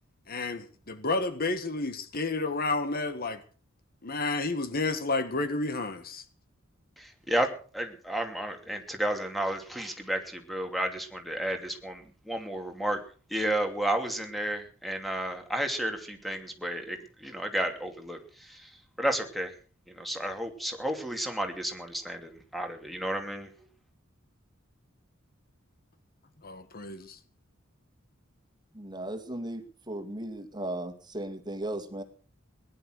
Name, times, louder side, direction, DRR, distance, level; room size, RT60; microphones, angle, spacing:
voice 1, 0.3-3.4 4.0-6.2 26.4-27.2, left 3 dB, 45° left, 1.6 m, -31 dB
voice 2, 7.0-7.5 7.7-13.0 13.3-19.5 19.9-23.5, right 1 dB, ahead, 2.7 m, -32 dB
voice 3, 28.7-32.0, right 1 dB, 20° right, 2.2 m, -36 dB
18.5 x 11.0 x 6.4 m
head